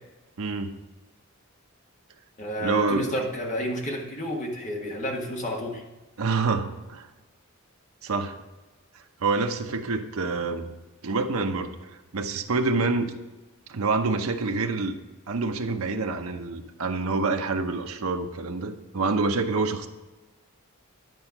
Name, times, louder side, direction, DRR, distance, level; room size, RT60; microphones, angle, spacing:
voice 1, 0.4-0.7 2.6-3.2 6.2-7.1 8.0-8.4 9.2-10.7 11.0-13.2 13.7-15.0 15.3-19.9, right 3 dB, 80° right, 5 dB, 0.7 m, -27 dB
voice 2, 2.4-5.8, equal, 35° left, 0 dB, 1.5 m, -30 dB
10.5 x 4.4 x 5.9 m, 1.2 s
head